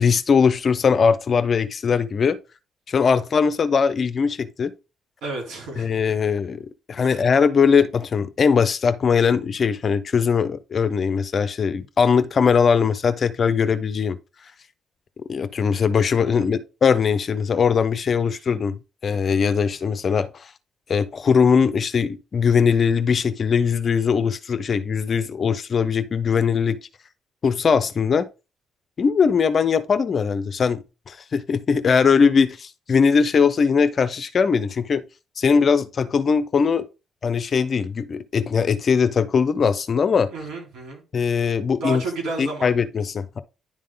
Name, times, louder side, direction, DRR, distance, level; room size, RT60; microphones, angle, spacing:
voice 1, 0.0-2.4 2.9-4.7 5.8-14.2 15.3-20.5 20.9-26.8 27.4-28.3 29.0-35.0 35.4-36.9 37.2-40.3 41.1-42.0 42.4-43.4, left 6 dB, 45° left, 0.7 m, -20 dB
voice 2, 5.2-6.0 7.0-7.2 16.2-16.5 40.3-41.0 41.8-42.7, right 2 dB, 85° right, 3.8 m, -31 dB
10.5 x 3.7 x 3.7 m
cardioid pair, 90°, 0 cm